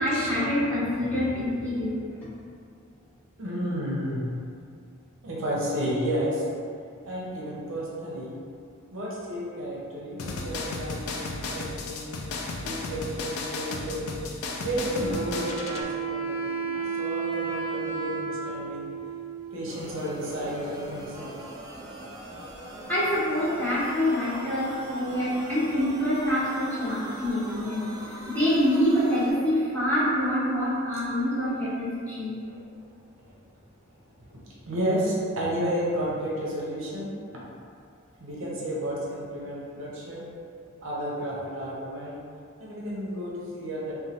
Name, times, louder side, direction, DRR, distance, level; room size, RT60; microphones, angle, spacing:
voice 1, 0.0-2.1 22.9-27.9 28.3-32.4, equal, 5° left, -12 dB, 0.9 m, -26 dB
voice 2, 3.4-4.3 5.2-6.5 7.0-8.3 8.9-12.2 12.6-14.2 14.6-18.9 19.5-21.5 32.5-32.6 33.2-33.3 34.2-34.4 34.7-37.1 38.2-40.3 40.8-42.2 42.6-43.9, equal, 65° right, -5 dB, 0.6 m, -32 dB
sound 1, 10.2-15.8, left 3 dB, 90° left, 0.4 m, -34 dB
Wind instrument woodwind instrument, 14.8-20.3, right 5 dB, 50° left, 1.0 m, -33 dB
sound 2, 19.7-29.3, right 1 dB, 20° right, 0.3 m, -41 dB
3.0 x 2.2 x 2.7 m, 2.4 s
head